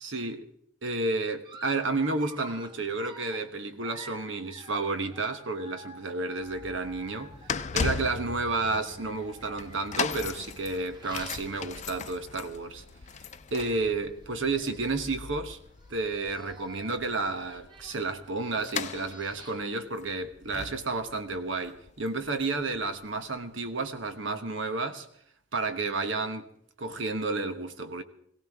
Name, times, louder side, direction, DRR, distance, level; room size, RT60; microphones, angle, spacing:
voice 1, 0.0-0.4 0.8-7.3 7.7-12.8 13.5-15.6 15.9-25.1 25.5-26.4 26.8-28.0, right 3 dB, 75° right, 1.2 m, -31 dB
Dog, 1.4-8.0 8.8-12.4 12.8-13.0 13.3-13.4 14.2-14.3 14.5-15.1 15.7-19.8, right 1 dB, 25° right, 1.1 m, -51 dB
sound 1, 6.4-23.4 24.0-24.1, left 6 dB, 40° left, 0.5 m, -38 dB
22.0 x 16.5 x 3.6 m
head